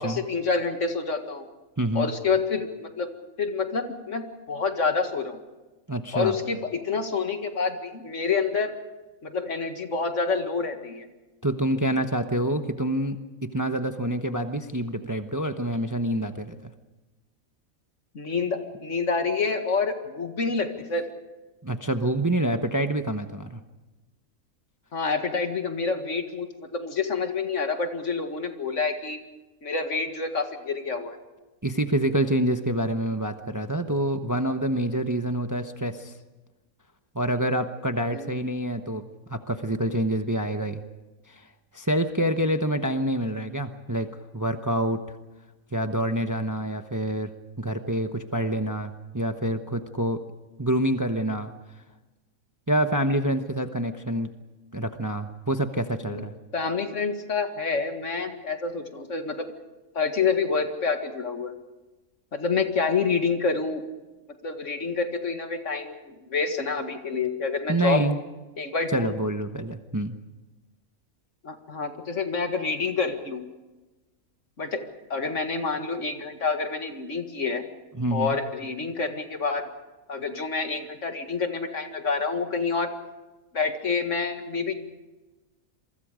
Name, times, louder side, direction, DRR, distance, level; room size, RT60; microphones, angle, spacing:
voice 1, 0.0-1.5 1.9-3.1 3.4-5.4 6.1-8.8 9.2-11.1 18.1-21.0 24.9-29.2 29.6-31.2 38.1-38.4 56.0-56.2 56.5-59.5 59.9-61.5 62.3-63.8 64.4-68.0 68.6-69.1 71.4-73.4 74.6-74.8 75.1-77.6 78.1-79.7 80.1-82.9 83.5-84.7, left 4 dB, 60° left, 6 dB, 2.2 m, -28 dB
voice 2, 1.8-2.1 5.9-6.4 11.4-13.2 13.5-16.7 21.6-23.6 31.6-36.1 37.1-39.0 39.3-40.8 41.3-41.4 41.7-44.1 44.3-45.2 45.7-50.2 50.6-51.5 52.7-54.3 54.7-56.3 67.7-68.2 68.9-70.2 77.9-78.4, right 1 dB, 15° right, 7 dB, 0.9 m, -27 dB
28.0 x 23.5 x 5.1 m, 1.1 s
omnidirectional pair, 1.5 m